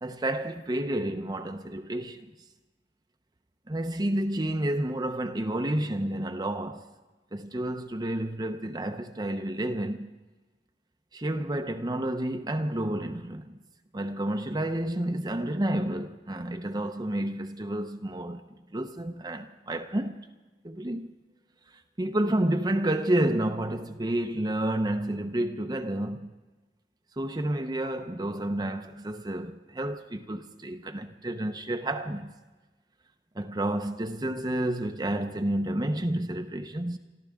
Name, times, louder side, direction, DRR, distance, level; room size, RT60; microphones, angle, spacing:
voice 1, 0.0-2.3 3.7-6.9 7.3-10.1 11.1-13.6 13.9-20.3 20.6-21.1 21.7-26.3 27.2-32.3 33.3-37.0, right 1 dB, 25° right, 0.7 m, -30 dB
25.5 x 14.0 x 3.6 m
head